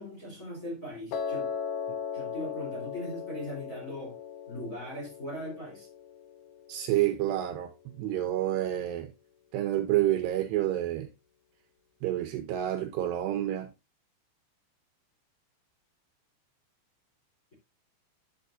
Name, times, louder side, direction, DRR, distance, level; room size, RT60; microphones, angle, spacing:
voice 1, 0.0-1.5 2.1-4.2 4.5-5.9, left 1 dB, 20° left, 2.9 m, -39 dB
Piano, 1.1-7.3, left 6 dB, 80° left, 3.3 m, -38 dB
voice 2, 6.7-7.7 8.0-9.1 9.5-11.1 12.0-13.7, right 13 dB, 80° right, 2.6 m, -28 dB
11.0 x 7.3 x 2.5 m
omnidirectional pair, 5.4 m